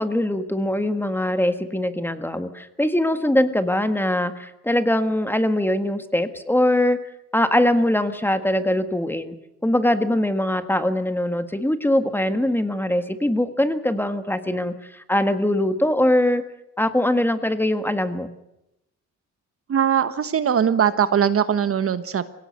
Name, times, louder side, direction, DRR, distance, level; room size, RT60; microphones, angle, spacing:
voice 1, 0.0-7.0 7.3-9.3 9.6-16.4 16.8-18.3, left 1 dB, 5° left, 9 dB, 1.7 m, -22 dB
voice 2, 19.7-22.3, right 8 dB, 50° right, 12 dB, 1.3 m, -20 dB
21.5 x 17.5 x 8.0 m, 0.86 s
cardioid pair, 90°, 30 cm